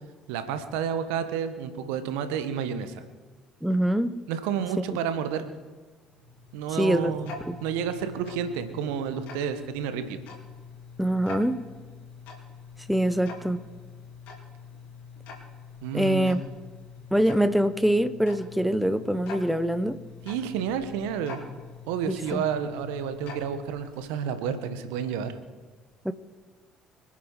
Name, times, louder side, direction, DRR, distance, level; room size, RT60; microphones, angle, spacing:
voice 1, 0.3-2.9 4.3-5.5 6.5-7.3 7.6-10.2 15.8-16.4 20.2-21.4 21.9-25.4, right 8 dB, 70° right, 10 dB, 1.4 m, -30 dB
voice 2, 3.6-4.2 6.7-7.1 7.5-7.6 11.0-11.6 12.9-13.6 15.9-16.4 17.1-20.0 22.1-22.4 26.0-26.1, equal, ahead, 12 dB, 1.1 m, -24 dB
Tick-tock, 6.0-24.3, left 5 dB, 65° left, 4.2 m, -45 dB
25.5 x 10.0 x 4.9 m, 1.4 s
hypercardioid pair, 50°, 3 cm